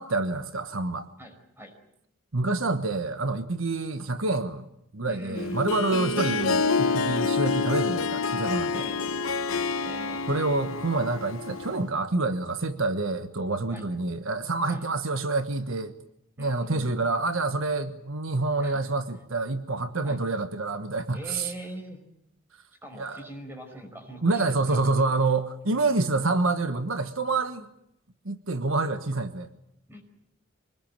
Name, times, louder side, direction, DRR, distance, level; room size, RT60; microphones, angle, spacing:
voice 1, 0.0-1.1 2.3-4.6 4.9-8.8 10.3-15.9 16.4-21.5 22.9-23.3 24.2-27.7 28.2-29.5, right 3 dB, 75° right, 9 dB, 1.4 m, -27 dB
voice 2, 1.2-1.7 5.0-5.7 8.7-10.2 13.7-13.8 14.7-14.8 16.4-16.8 18.6-18.8 20.0-20.2 21.1-22.0 22.8-24.9 25.2-25.3 29.9-30.0, equal, 10° right, 5 dB, 5.3 m, -42 dB
Harp, 5.4-11.9, left 4 dB, 85° left, 1.0 m, -28 dB
25.5 x 20.0 x 8.9 m, 0.78 s
head